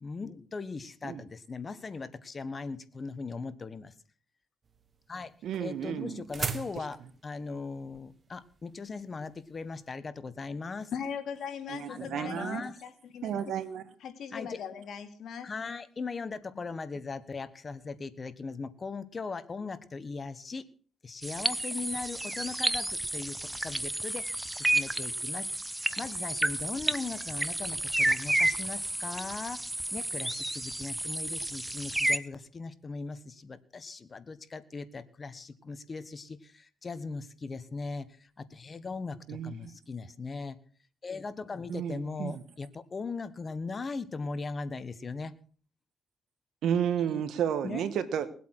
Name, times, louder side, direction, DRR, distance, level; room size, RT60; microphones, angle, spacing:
voice 1, 0.0-3.9 5.1-5.3 5.6-10.9 11.9-12.8 14.3-14.6 15.4-20.6 21.0-25.5 26.0-29.6 29.9-40.6 41.0-45.4 47.0-47.3 47.6-47.9, left 4 dB, 35° left, 13 dB, 1.4 m, -39 dB
sound 1, 4.6-9.9, right 5 dB, 40° right, 1.3 m, -40 dB
voice 2, 5.4-6.2 11.7-12.6 13.2-13.8 39.3-39.7 41.7-42.4 46.6-48.3, right 9 dB, 75° right, 13 dB, 1.5 m, -32 dB
voice 3, 10.9-13.3 14.0-15.5, left 7 dB, 70° left, 6 dB, 2.5 m, -39 dB
sound 2, 21.2-32.2, right 1 dB, 10° right, 0.9 m, -31 dB
20.0 x 8.3 x 6.3 m, 0.43 s
cardioid pair, 90°, 0 cm